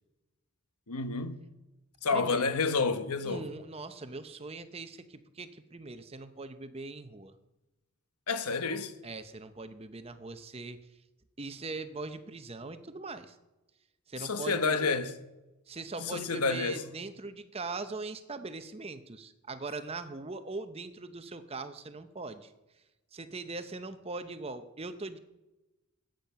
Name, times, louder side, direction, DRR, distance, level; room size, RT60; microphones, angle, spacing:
voice 1, 0.9-1.4 2.0-3.5 8.3-8.9 14.2-15.1 16.0-16.8, left 4 dB, 85° left, 1.1 m, -29 dB
voice 2, 2.1-2.5 3.2-7.3 9.0-10.8 11.4-13.4 14.1-14.9 15.7-22.5 23.1-25.2, right 3 dB, 25° right, 0.7 m, -41 dB
14.0 x 9.1 x 5.8 m
head